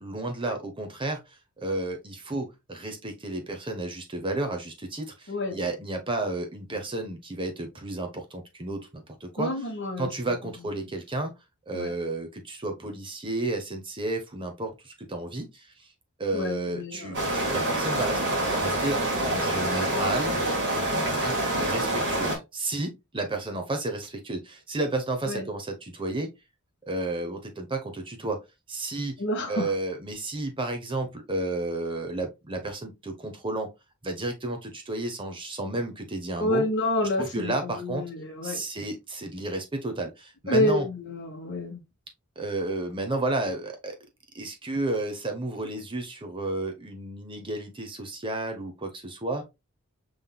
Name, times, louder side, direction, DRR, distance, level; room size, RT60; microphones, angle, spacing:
voice 1, 0.0-9.5 10.0-11.3 11.7-15.9 16.2-20.4 20.7-26.3 26.9-28.4 28.7-29.2 29.5-33.7 34.0-36.7 37.2-38.1 38.4-40.9 42.4-44.0 44.3-49.4, right 2 dB, 25° right, 0.9 m, -32 dB
voice 2, 5.3-5.6 9.4-10.3 11.7-11.9 16.3-17.2 25.2-25.5 29.2-29.7 36.4-38.6 40.5-41.8, left 1 dB, 55° left, 1.4 m, -29 dB
sound 1, 17.1-22.4, right 1 dB, 55° right, 2.0 m, -26 dB
5.3 x 3.7 x 2.3 m
head